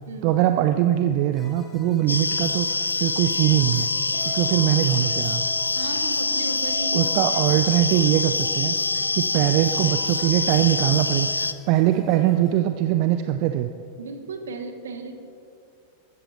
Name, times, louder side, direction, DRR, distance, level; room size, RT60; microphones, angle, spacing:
voice 1, 0.2-3.9 4.2-5.4 6.9-13.7, right 13 dB, 45° right, 9 dB, 0.4 m, -22 dB
sound 1, 1.3-12.6, left 5 dB, 20° left, 1.4 m, -44 dB
sound 2, 2.1-11.5, left 3 dB, 80° left, 0.4 m, -25 dB
voice 2, 5.8-7.1 7.5-7.8 14.0-15.2, right 4 dB, 65° right, 7 dB, 1.2 m, -35 dB
14.5 x 13.5 x 3.3 m, 2.6 s
figure-of-eight pair, 90°, 0 cm